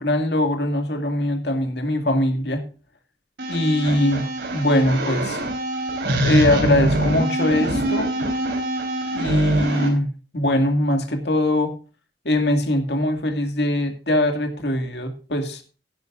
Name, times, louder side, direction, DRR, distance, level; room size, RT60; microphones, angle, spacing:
voice 1, 0.0-2.6 3.5-4.3 4.5-5.4 6.2-8.1 9.1-11.7 12.2-15.6, left 1 dB, 65° left, 6 dB, 2.2 m, -21 dB
sound 1, 3.4-9.9, right 1 dB, 65° right, 3.9 m, -24 dB
16.5 x 11.0 x 2.5 m, 0.35 s
head